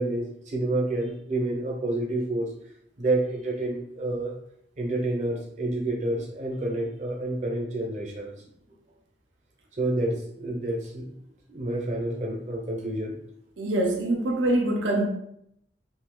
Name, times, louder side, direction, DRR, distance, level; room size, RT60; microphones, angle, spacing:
voice 1, 0.0-2.5 3.0-4.3 4.8-8.3 9.8-11.2 11.5-13.2, right 2 dB, 40° right, 0.7 m, -29 dB
voice 2, 13.6-15.1, right 1 dB, 80° right, 0.6 m, -24 dB
2.8 x 2.7 x 3.7 m
head